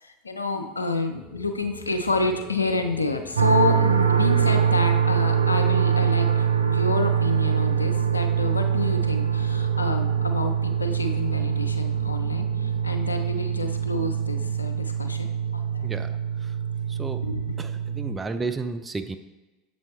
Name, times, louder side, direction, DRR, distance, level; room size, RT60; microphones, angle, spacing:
voice 1, 0.0-15.9 17.2-17.4, left 2 dB, 85° left, 6 dB, 0.5 m, -29 dB
sound 1, 1.1-14.6, left 2 dB, 25° left, 1.2 m, -44 dB
sound 2, 3.4-18.2, right 7 dB, 85° right, 0.3 m, -24 dB
voice 2, 15.8-16.6 16.9-17.2 17.6-19.2, right 4 dB, 20° right, 8 dB, 0.4 m, -32 dB
7.4 x 4.2 x 3.1 m, 1.2 s
figure-of-eight pair, 80°, 0 cm